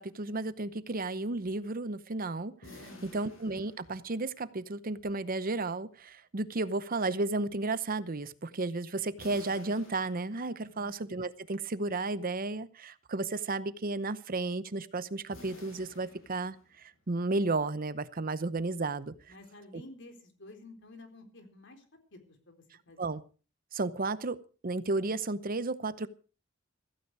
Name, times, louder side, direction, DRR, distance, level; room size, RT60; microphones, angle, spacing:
voice 1, 0.0-19.1 19.7-19.8 23.0-23.2 23.7-26.1, right 3 dB, 45° right, 15 dB, 0.8 m, -33 dB
sound 1, 2.6-4.5 9.2-10.8 15.3-17.0, left 2 dB, 80° left, 7.4 m, -52 dB
voice 2, 2.8-3.2 10.6-10.9 19.3-21.8 22.1-23.0, left 2 dB, 60° left, 6 dB, 3.9 m, -52 dB
16.0 x 15.0 x 4.7 m, 0.36 s
head